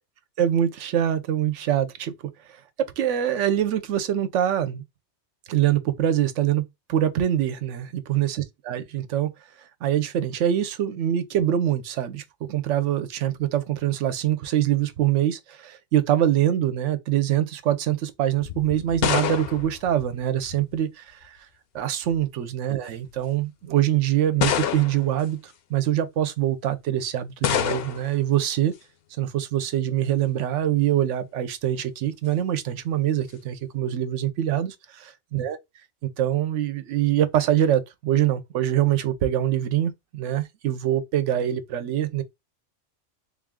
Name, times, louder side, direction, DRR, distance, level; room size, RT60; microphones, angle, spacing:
voice 1, 0.4-2.1 2.4-2.6 3.0-4.8 5.5-6.6 6.9-9.3 9.6-21.5 21.7-28.7 29.2-35.6 36.0-42.2, right 11 dB, 85° right, 1.0 m, -24 dB
sound 1, 18.4-20.8 21.8-22.2 23.1-23.2 24.4-25.2 27.4-28.2, left 9 dB, 65° left, 0.7 m, -27 dB
3.6 x 2.4 x 3.5 m
omnidirectional pair, 1.2 m